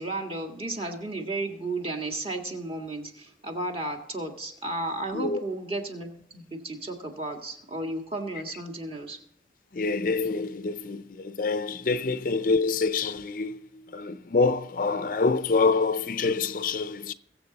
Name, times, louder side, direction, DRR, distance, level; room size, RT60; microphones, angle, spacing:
voice 1, 0.0-9.2, right 2 dB, 30° right, 1.8 m, -33 dB
voice 2, 9.7-17.1, left 4 dB, 50° left, 0.5 m, -26 dB
22.5 x 7.5 x 4.0 m
head